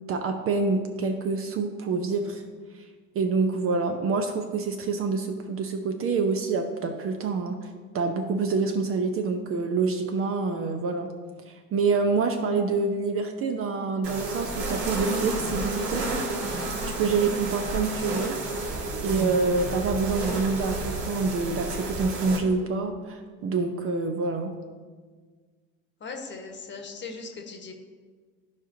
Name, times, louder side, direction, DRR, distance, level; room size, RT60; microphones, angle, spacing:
voice 1, 0.1-2.4 2.7-2.8 3.1-7.7 7.9-11.1 11.4-16.0 16.9-18.4 19.0-24.5, right 4 dB, 30° right, 5 dB, 0.7 m, -27 dB
sound 1, 14.0-22.4, right 2 dB, 55° right, 1.7 m, -31 dB
voice 2, 26.0-27.7, left 4 dB, 25° left, 3 dB, 1.3 m, -39 dB
13.5 x 5.0 x 2.7 m, 1.5 s
figure-of-eight pair, 65°, 42 cm